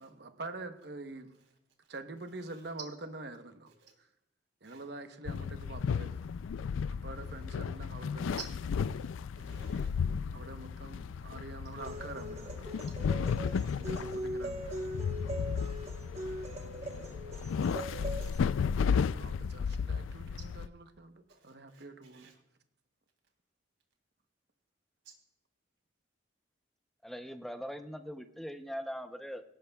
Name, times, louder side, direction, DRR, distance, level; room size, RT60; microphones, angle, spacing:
voice 1, 0.0-1.3 1.9-3.7 4.6-6.2 7.0-8.4 9.4-9.7 10.3-12.7 13.6-14.7 19.2-22.3, right 2 dB, 55° right, 0.9 m, -46 dB
sound 1, 5.2-20.7, left 6 dB, 90° left, 0.3 m, -34 dB
voice 2, 9.4-9.9 12.7-13.7 15.6-15.9 21.7-21.8 22.1-22.3, right 8 dB, 75° right, 3.1 m, -51 dB
sound 2, 11.8-18.4, right 1 dB, 35° right, 1.1 m, -41 dB
voice 3, 27.0-29.4, equal, ahead, 0.7 m, -41 dB
18.0 x 17.0 x 2.3 m
head